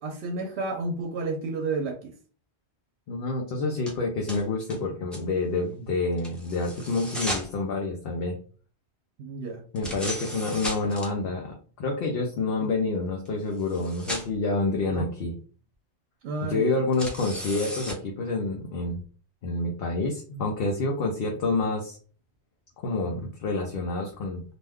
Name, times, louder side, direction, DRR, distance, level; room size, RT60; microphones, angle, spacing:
voice 1, 0.0-2.1 9.2-9.6 12.6-12.7 14.9-15.1 16.2-16.8, right 3 dB, 75° right, 3 dB, 0.8 m, -31 dB
voice 2, 3.1-8.4 9.7-15.3 16.5-19.0 19.4-22.0 22.8-24.6, left 3 dB, 65° left, 0 dB, 0.8 m, -28 dB
sound 1, 3.9-4.0 4.3-4.8 5.1-5.2 6.2-7.5 9.8-11.1 13.3-13.4 13.6-14.3 16.9-17.9, equal, ahead, 0.6 m, -35 dB
2.5 x 2.2 x 3.4 m, 0.40 s
omnidirectional pair, 1.1 m